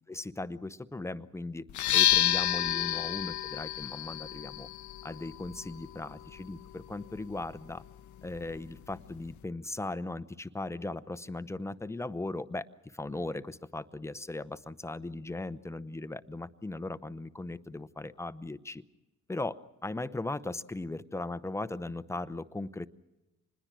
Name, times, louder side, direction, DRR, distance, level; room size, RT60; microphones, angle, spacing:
voice 1, 0.1-1.6 1.9-4.7 5.0-7.8 8.2-12.7 12.9-18.8 19.3-22.9, left 2 dB, 10° left, 13 dB, 0.8 m, -38 dB
sound 1, 1.7-9.4, left 13 dB, 70° left, 0.8 m, -32 dB
26.0 x 20.5 x 6.2 m, 1.0 s
cardioid pair, 90°, 30 cm